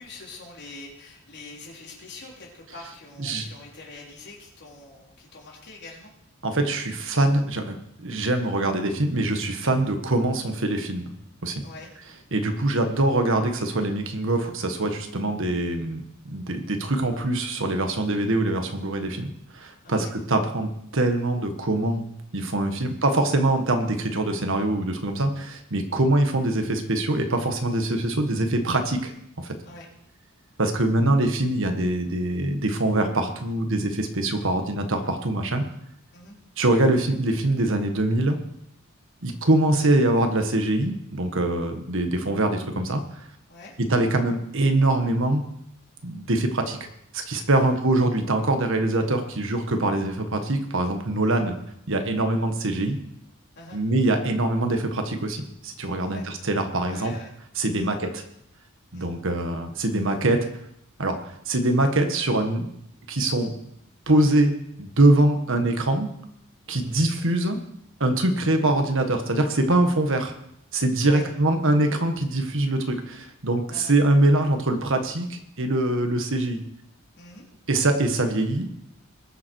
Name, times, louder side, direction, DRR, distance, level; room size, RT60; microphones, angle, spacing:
voice 1, 0.0-6.1 11.6-11.9 19.8-20.1 22.8-23.0 25.9-26.1 29.6-29.9 36.1-36.4 43.5-43.7 47.5-47.7 51.2-51.5 53.6-53.8 56.0-56.3 56.9-57.3 57.8-57.9 58.9-59.1 66.7-67.0 71.0-71.3 73.7-73.9 77.2-77.5, left 2 dB, 55° left, -3 dB, 3.9 m, -44 dB
voice 2, 6.4-11.1 11.4-11.6 12.3-22.0 22.3-29.1 29.4-29.6 30.6-35.6 36.6-38.4 39.2-43.0 43.9-45.5 46.0-46.8 47.1-51.5 51.9-53.0 53.7-57.1 57.6-58.2 58.9-60.4 61.0-62.7 63.1-63.5 64.1-66.1 66.7-67.6 68.0-70.3 70.7-76.6 77.7-78.7, right 2 dB, 65° right, 6 dB, 1.6 m, -23 dB
20.5 x 7.5 x 4.7 m, 0.75 s
head